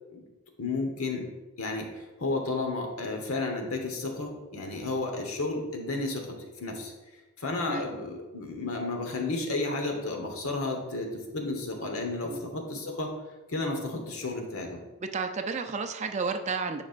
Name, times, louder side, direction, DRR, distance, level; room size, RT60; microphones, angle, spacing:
voice 1, 0.6-1.3 1.6-6.3 6.6-6.9 7.4-13.1 13.5-14.8, left 2 dB, 75° left, 3 dB, 1.2 m, -32 dB
voice 2, 15.0-16.8, right 4 dB, 30° right, 7 dB, 0.4 m, -32 dB
9.3 x 5.4 x 2.5 m, 1.2 s
head